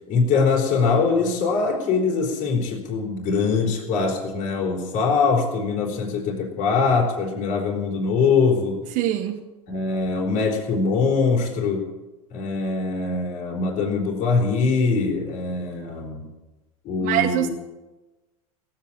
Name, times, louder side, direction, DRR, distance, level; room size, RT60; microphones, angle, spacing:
voice 1, 0.1-8.8 9.7-11.9 12.3-16.3 16.8-17.5, left 4 dB, 45° left, 4.1 m, -22 dB
voice 2, 8.9-9.4 17.0-17.5, right 12 dB, 45° right, 1.2 m, -23 dB
17.0 x 8.8 x 8.7 m
supercardioid pair, 120°, 18 cm